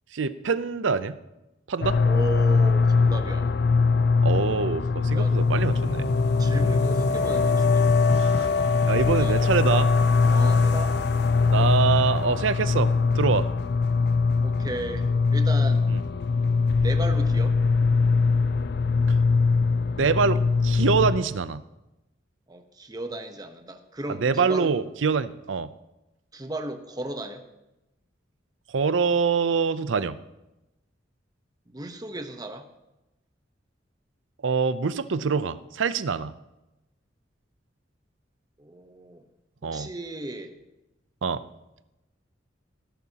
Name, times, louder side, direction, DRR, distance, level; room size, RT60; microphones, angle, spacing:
voice 1, 0.1-1.2 1.7-2.0 4.2-6.2 8.1-8.5 8.9-9.9 11.5-13.5 15.9-16.0 20.0-21.6 24.2-25.7 28.7-30.2 34.4-36.3 39.6-39.9 41.2-41.4, right 5 dB, 85° right, 14 dB, 0.6 m, -25 dB
sound 1, 1.8-21.2, left 4 dB, 60° left, 0.5 m, -22 dB
voice 2, 2.0-3.6 5.1-5.4 6.4-7.9 9.1-9.5 10.3-11.0 14.4-15.9 16.8-17.6 22.5-24.7 26.3-27.4 31.7-32.7 38.6-39.2 39.6-40.6, right 1 dB, 20° right, 6 dB, 1.0 m, -35 dB
18.0 x 11.0 x 2.9 m, 0.96 s
head